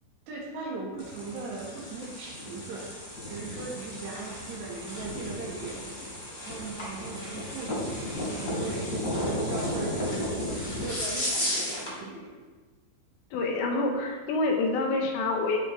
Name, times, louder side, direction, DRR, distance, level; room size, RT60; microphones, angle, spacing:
voice 1, 0.3-2.9 3.3-6.1 6.5-8.0 8.3-12.4, right 3 dB, 65° right, -3 dB, 3.9 m, -39 dB
sound 1, 1.0-12.0, left 1 dB, 20° left, 3.0 m, -33 dB
voice 2, 13.3-15.6, left 3 dB, 75° left, 2 dB, 3.2 m, -27 dB
16.5 x 7.2 x 3.7 m, 1.4 s
omnidirectional pair, 5.6 m